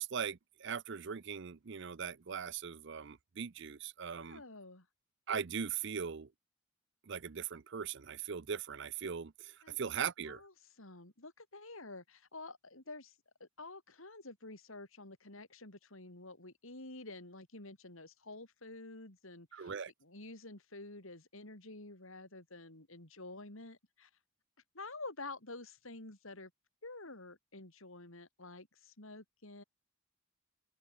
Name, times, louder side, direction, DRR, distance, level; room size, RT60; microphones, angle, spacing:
voice 1, 0.0-4.4 5.3-6.3 7.1-10.4 19.5-19.9, right 7 dB, 55° right, 0.6 m, -40 dB
voice 2, 4.2-4.9 9.6-9.8 10.2-13.1 13.4-19.7 20.0-24.1 24.7-26.5 26.8-29.6, left 2 dB, 65° left, 3.9 m, -49 dB
open air
head